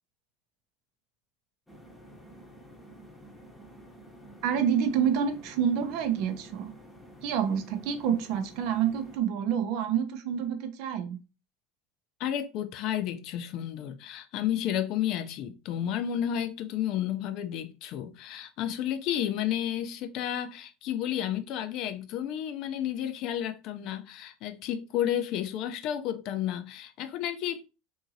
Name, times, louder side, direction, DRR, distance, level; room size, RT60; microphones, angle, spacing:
sound 1, 1.7-9.2, right 1 dB, 10° left, 0.8 m, -50 dB
voice 1, 4.4-6.7 7.2-11.2, right 8 dB, 60° right, 0.5 m, -28 dB
voice 2, 12.2-27.7, left 10 dB, 55° left, 0.4 m, -32 dB
2.7 x 2.6 x 2.6 m
hypercardioid pair, 90°, 0 cm